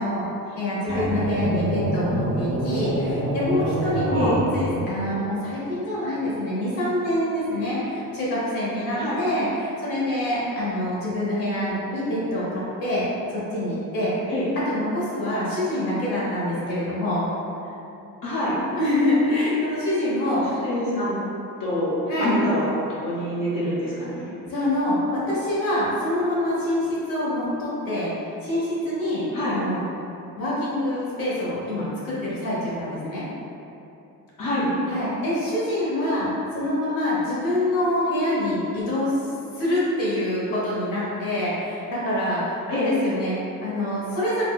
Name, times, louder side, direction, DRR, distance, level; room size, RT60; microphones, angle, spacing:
voice 1, 0.0-12.4 12.8-13.0 13.3-14.1 14.7-17.2 18.7-20.6 22.1-22.4 24.5-28.1 28.4-29.2 29.5-29.8 30.3-33.2 34.9-39.1 39.5-44.4, left 1 dB, 90° left, -8 dB, 1.2 m, -25 dB
sound 1, 0.9-5.2, right 1 dB, 55° right, 0.6 m, -26 dB
voice 2, 18.2-18.5 20.5-21.2 21.6-21.9 22.2-24.3 29.3-29.6 34.4-34.7 42.7-42.9, equal, 60° left, -9 dB, 0.7 m, -26 dB
4.1 x 2.1 x 2.3 m, 2.8 s
cardioid pair, 115°, 34 cm